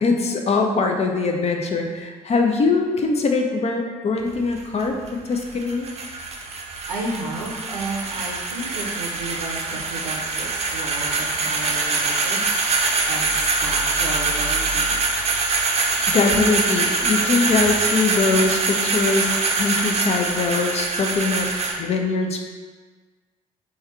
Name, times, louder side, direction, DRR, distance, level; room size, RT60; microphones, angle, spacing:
voice 1, 0.0-5.0 5.3-5.9 16.1-21.5 21.8-22.4, left 3 dB, 35° left, 3 dB, 0.5 m, -22 dB
sound 1, 4.2-21.7, right 3 dB, 35° right, 0.6 m, -24 dB
voice 2, 6.3-15.0 16.0-16.2 16.9-17.4, right 2 dB, 90° right, -3 dB, 0.5 m, -33 dB
3.4 x 2.2 x 4.3 m, 1.4 s
figure-of-eight pair, 45°, 19 cm